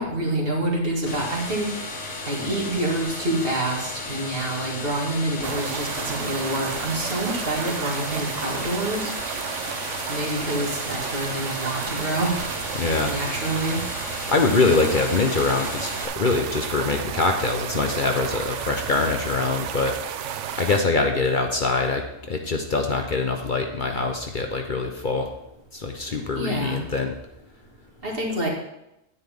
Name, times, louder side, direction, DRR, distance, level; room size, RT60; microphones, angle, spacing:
voice 1, 0.0-1.7 2.2-9.1 10.1-12.5 13.0-13.8 26.3-26.8 28.0-28.5, right 1 dB, 50° right, -2 dB, 2.3 m, -27 dB
sound 1, 1.1-16.1, left 2 dB, 90° left, 1.7 m, -34 dB
sound 2, 5.4-20.8, right 9 dB, 85° right, 1.0 m, -32 dB
voice 2, 12.7-13.1 14.3-25.3 25.7-27.1, left 3 dB, 45° left, 4 dB, 0.9 m, -24 dB
9.7 x 9.5 x 3.6 m, 0.86 s
omnidirectional pair, 1.2 m